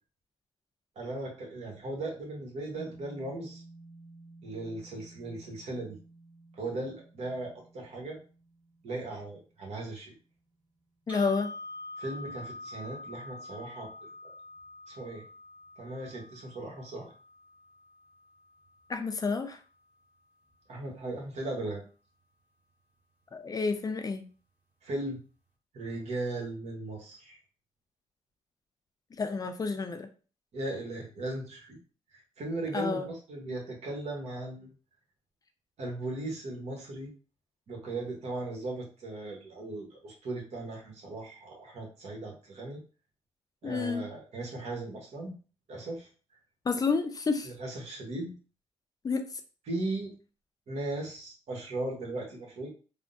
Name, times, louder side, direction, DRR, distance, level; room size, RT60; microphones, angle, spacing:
voice 1, 1.0-3.6 4.4-6.0 6.5-8.2 8.8-10.1 12.0-13.9 14.2-14.3 14.9-15.2 15.8-17.1 20.7-21.8 24.8-25.2 25.7-27.4 30.5-31.8 32.1-34.7 35.8-37.1 37.7-42.8 43.6-45.3 45.7-46.1 47.4-48.3 49.7-50.1 50.7-52.7, right 2 dB, 65° right, 0 dB, 1.1 m, -37 dB
sound 1, 2.7-11.2, right 2 dB, 35° right, 1.4 m, -54 dB
voice 2, 11.1-11.5 18.9-19.6 23.3-24.2 29.2-30.1 32.7-33.1 43.6-44.0 46.6-47.5 49.0-49.4, left 4 dB, 30° left, 7 dB, 0.4 m, -30 dB
sound 2, 11.1-19.1, left 2 dB, 15° right, 0.9 m, -46 dB
3.4 x 2.1 x 2.6 m, 0.36 s
cardioid pair, 85°, 12 cm